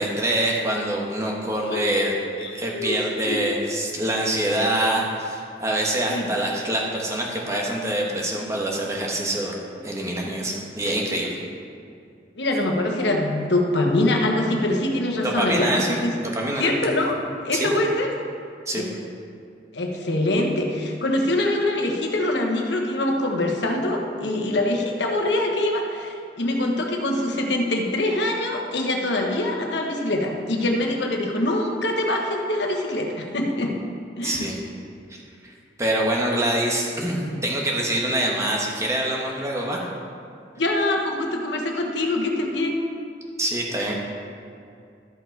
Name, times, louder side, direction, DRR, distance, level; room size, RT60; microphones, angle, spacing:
voice 1, 0.0-9.5 9.8-11.4 15.2-16.7 17.5-17.7 18.7-18.8 34.2-34.6 35.1-39.9 43.4-43.9, right 1 dB, 15° right, -2 dB, 1.3 m, -25 dB
voice 2, 1.7-3.5 6.1-6.3 12.4-16.1 16.6-17.2 17.4-18.1 18.8-18.9 19.7-33.8 34.2-34.5 40.6-42.7, left 1 dB, 80° left, 1 dB, 1.2 m, -24 dB
13.0 x 5.6 x 4.6 m, 2.5 s
head